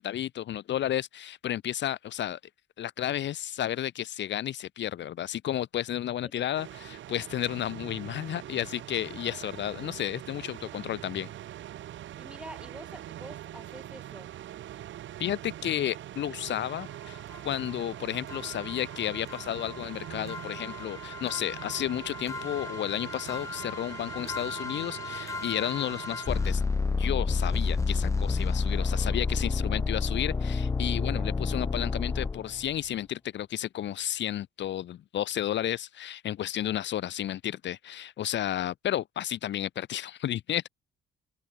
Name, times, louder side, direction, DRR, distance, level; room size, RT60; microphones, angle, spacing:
voice 1, 0.0-2.4 2.8-11.3 15.2-17.2 17.4-26.6 27.0-40.7, left 11 dB, 65° left, 1.0 m, -32 dB
sound 1, 6.5-26.5, right 12 dB, 70° right, 1.2 m, -43 dB
voice 2, 12.2-14.3 30.9-31.4, right 1 dB, 5° right, 3.0 m, -47 dB
sound 2, 16.5-16.6 17.3-17.4 17.7-17.8 18.3-32.7, left 4 dB, 15° left, 0.3 m, -31 dB
cardioid pair, 90°, 20 cm